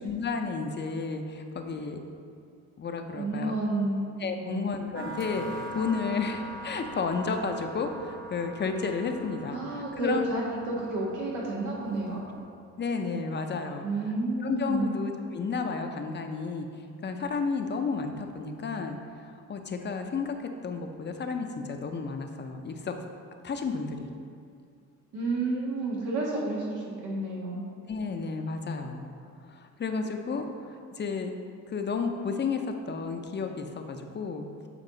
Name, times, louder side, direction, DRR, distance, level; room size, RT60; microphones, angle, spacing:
voice 1, 0.0-2.0 2.8-3.5 4.2-10.3 12.8-13.9 14.4-16.7 17.0-22.9 23.4-24.1 27.9-29.1 29.5-31.3 31.7-34.5, left 4 dB, 35° left, 5 dB, 0.6 m, -32 dB
voice 2, 3.1-4.0 4.3-4.6 9.5-12.2 13.8-14.9 25.1-27.6, right 2 dB, 90° right, -5 dB, 1.6 m, -30 dB
sound 1, 4.9-12.4, right 1 dB, 70° right, 1.0 m, -42 dB
7.5 x 4.4 x 3.9 m, 2.3 s
cardioid pair, 90°, 30 cm